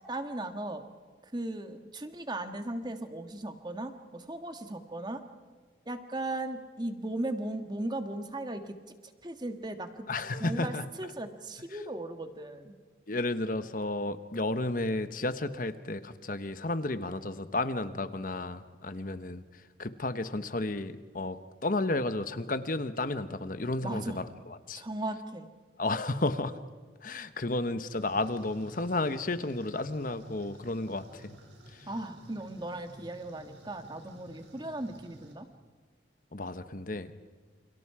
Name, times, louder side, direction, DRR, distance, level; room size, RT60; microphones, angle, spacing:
voice 1, 0.1-0.8 1.3-5.2 5.9-8.8 9.2-10.1 10.4-12.7 23.8-24.2 24.7-25.5 31.9-35.5, right 1 dB, 25° right, 7 dB, 1.6 m, -37 dB
voice 2, 10.1-10.8 13.1-19.4 19.8-21.4 21.6-24.8 25.8-26.5 27.0-31.4 31.7-31.9 36.3-37.1, left 2 dB, 45° left, 11 dB, 1.1 m, -32 dB
sound 1, 27.9-35.3, right 1 dB, 80° right, 4.8 m, -53 dB
29.0 x 29.0 x 4.9 m, 1.5 s
head